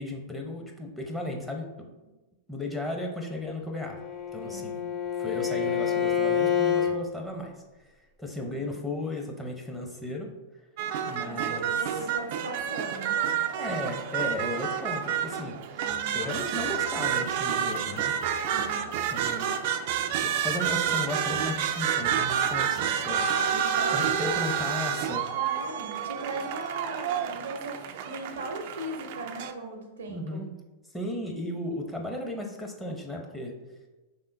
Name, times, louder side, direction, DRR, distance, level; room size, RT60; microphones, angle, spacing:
voice 1, 0.0-1.7 2.5-4.0 4.3-4.7 5.2-7.6 8.2-10.3 11.1-11.7 13.6-15.6 16.1-18.1 19.1-19.5 20.1-23.3 23.9-25.3 30.1-30.5 30.9-33.5, left 1 dB, 5° left, 0 dB, 0.8 m, -35 dB
Bowed string instrument, 3.8-6.9, left 8 dB, 20° left, 1.1 m, -27 dB
voice 2, 4.4-4.9 8.4-8.8 11.2-13.2 15.8-16.3 18.5-18.9 22.5-23.0 23.3-24.6 25.3-30.4, right 2 dB, 85° right, 3 dB, 0.7 m, -39 dB
sound 1, 10.8-29.5, right 8 dB, 55° right, 0.4 m, -29 dB
5.3 x 3.6 x 2.6 m, 1.1 s
hypercardioid pair, 105°, 0 cm